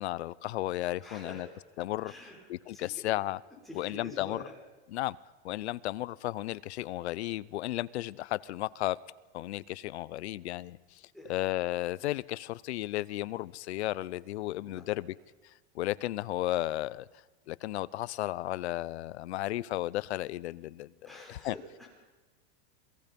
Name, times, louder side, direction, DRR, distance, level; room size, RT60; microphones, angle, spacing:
voice 1, 0.0-1.5 1.8-2.1 2.5-3.4 3.7-4.4 4.9-5.2 5.4-9.0 9.3-11.0 11.3-15.1 15.7-17.1 17.5-20.9 21.3-21.5, left 15 dB, 80° left, 0.8 m, -34 dB
voice 2, 1.0-1.5 2.0-3.1 3.6-4.6 11.1-11.5 14.5-15.0 21.0-21.9, left 1 dB, ahead, 5.0 m, -47 dB
27.5 x 19.0 x 5.3 m
supercardioid pair, 160°, 33 cm